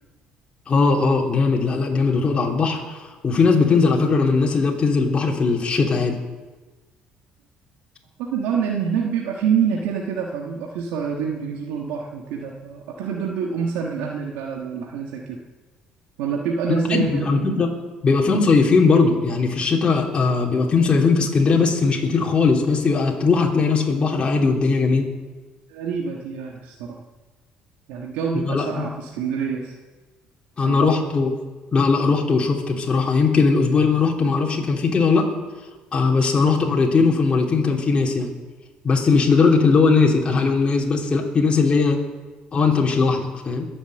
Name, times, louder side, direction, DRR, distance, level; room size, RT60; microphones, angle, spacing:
voice 1, 0.7-6.2 16.7-17.7 18.0-25.1 28.5-28.9 30.6-31.3 31.7-35.3 35.9-38.3 38.8-42.0 42.5-43.7, left 4 dB, 35° left, -1 dB, 3.1 m, -19 dB
voice 2, 8.2-15.4 16.2-17.4 25.7-27.0 27.9-29.8 30.6-30.9, right 6 dB, 85° right, 0 dB, 1.4 m, -26 dB
21.5 x 7.2 x 7.9 m, 1.3 s
supercardioid pair, 85°, 3 cm